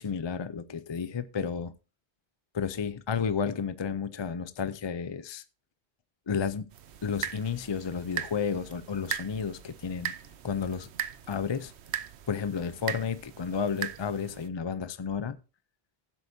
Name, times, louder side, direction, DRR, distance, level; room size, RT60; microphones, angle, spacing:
voice 1, 0.0-1.7 2.5-5.4 6.3-6.7 7.0-10.1 10.4-10.9 11.3-11.7 12.3-15.4, left 6 dB, 40° left, 0.4 m, -32 dB
sound 1, 6.7-14.5, right 9 dB, 80° right, 1.0 m, -39 dB
16.0 x 7.9 x 2.7 m
omnidirectional pair, 1.1 m